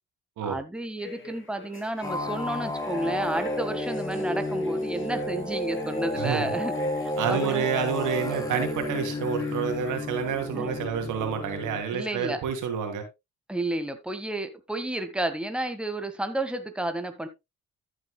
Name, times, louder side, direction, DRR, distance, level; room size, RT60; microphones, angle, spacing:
voice 1, 0.4-7.6 10.5-10.7 11.9-12.4 13.5-17.3, right 1 dB, 5° right, 8 dB, 1.6 m, -31 dB
sound 1, 1.0-10.0, left 4 dB, 40° left, 3.3 m, -46 dB
sound 2, 2.0-11.8, left 1 dB, 10° left, 1.8 m, -31 dB
voice 2, 6.2-6.6 7.2-13.0, right 7 dB, 85° right, 6 dB, 2.8 m, -29 dB
13.5 x 7.9 x 2.2 m, 0.22 s
cardioid pair, 90°, 30 cm